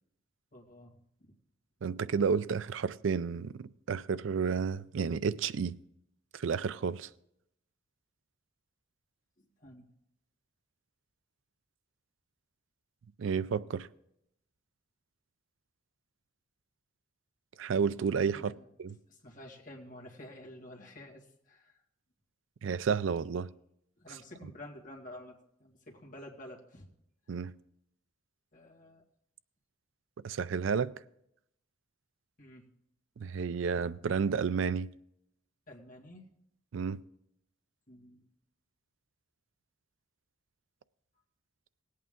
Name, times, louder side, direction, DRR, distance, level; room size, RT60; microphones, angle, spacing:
voice 1, 0.5-1.0 9.4-9.9 18.3-18.6 19.1-21.8 24.0-26.9 28.5-29.0 32.4-32.7 35.7-36.3 37.9-38.3, left 1 dB, 40° left, 2.1 m, -50 dB
voice 2, 1.8-5.8 6.3-7.1 13.2-13.9 17.6-18.5 18.8-19.0 22.6-23.5 27.3-27.5 30.2-30.9 33.2-34.9 36.7-37.0, right 6 dB, 65° right, 0.4 m, -31 dB
19.0 x 8.5 x 3.7 m
head